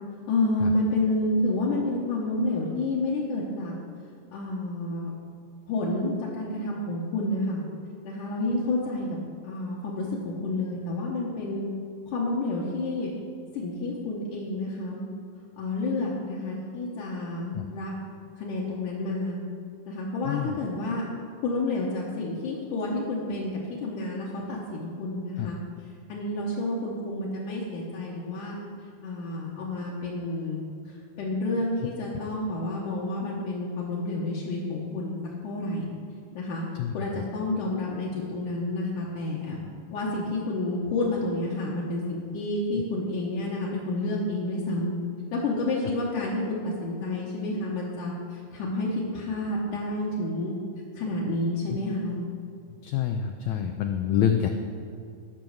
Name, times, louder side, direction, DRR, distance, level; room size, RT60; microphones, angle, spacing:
voice 1, 0.3-3.8 4.3-5.1 5.7-7.6 8.0-9.2 9.4-11.6 12.1-13.1 13.5-15.1 15.6-17.9 18.4-19.4 19.9-21.1 21.4-25.6 26.1-28.6 29.0-30.6 31.2-35.2 35.4-35.9 36.3-36.6 36.9-39.6 39.9-44.9 45.3-50.5 50.9-52.2, left 2 dB, 70° left, -5 dB, 2.6 m, -29 dB
voice 2, 20.2-20.6 25.4-25.5 36.8-37.2 52.8-54.5, left 9 dB, 90° left, 5 dB, 1.6 m, -27 dB
13.0 x 6.1 x 6.4 m, 2.4 s
omnidirectional pair, 3.9 m